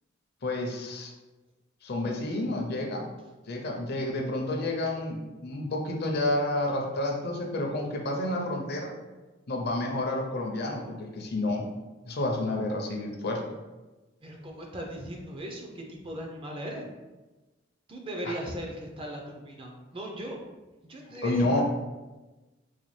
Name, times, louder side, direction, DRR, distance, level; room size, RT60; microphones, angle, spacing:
voice 1, 0.4-1.1 1.8-3.1 3.5-8.9 9.5-11.6 12.1-13.4 18.3-18.4 21.0-21.6, left 1 dB, 55° left, 1 dB, 0.6 m, -30 dB
voice 2, 14.2-16.9 17.9-20.4 20.8-21.6, equal, 30° right, 1 dB, 0.5 m, -38 dB
4.1 x 2.3 x 3.1 m, 1.1 s
head